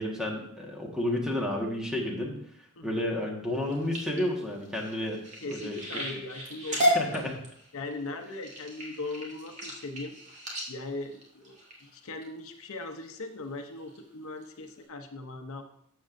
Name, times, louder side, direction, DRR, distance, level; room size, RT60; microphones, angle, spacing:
voice 1, 0.0-2.3 2.8-5.2 5.5-6.1 6.9-7.4, left 1 dB, 5° right, -1 dB, 1.5 m, -31 dB
sound 1, 3.5-12.2 12.8-13.2 13.6-14.0 14.4-14.5 14.8-14.9, equal, 35° right, 2.0 m, -33 dB
voice 2, 5.4-7.3 7.7-10.2 10.7-15.8, left 2 dB, 65° left, 6 dB, 0.8 m, -39 dB
13.0 x 7.4 x 2.6 m, 0.68 s
head